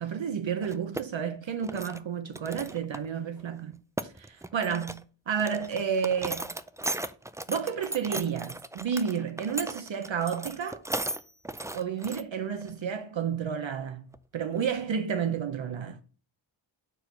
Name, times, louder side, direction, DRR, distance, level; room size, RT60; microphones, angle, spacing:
voice 1, 0.0-6.5 7.5-10.8 11.7-14.1 14.3-16.0, right 7 dB, 70° right, 0.7 m, -31 dB
sound 1, 0.6-1.0 1.4-2.0 2.4-3.1 3.4-3.5 3.7-5.0 5.4-12.2 12.6-12.7 14.1-14.2 14.6-14.8, right 1 dB, 5° right, 0.3 m, -36 dB
4.6 x 4.5 x 5.2 m
wide cardioid pair, 50°, 48 cm